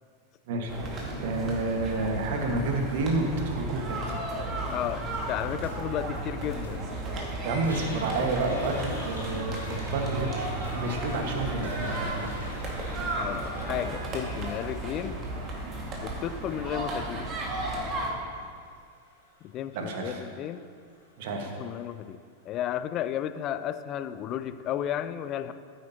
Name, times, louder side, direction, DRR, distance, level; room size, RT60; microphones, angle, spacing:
sound 1, 0.7-18.1, right 2 dB, 30° right, 1.9 m, -34 dB
voice 1, 1.2-4.1 7.4-12.3 19.7-20.2 21.2-21.5, right 2 dB, 50° right, 2 dB, 1.5 m, -30 dB
sound 2, 4.7-12.7, left 5 dB, 65° left, 1.3 m, -47 dB
voice 2, 4.7-6.8 13.2-15.2 16.0-17.3 19.4-20.6 21.6-22.2 22.4-25.5, left 10 dB, 35° left, 12 dB, 0.4 m, -33 dB
Toilet flush, 6.8-22.1, left 1 dB, 80° left, 2.9 m, -48 dB
14.0 x 9.2 x 2.9 m, 2.2 s
figure-of-eight pair, 90°, 0 cm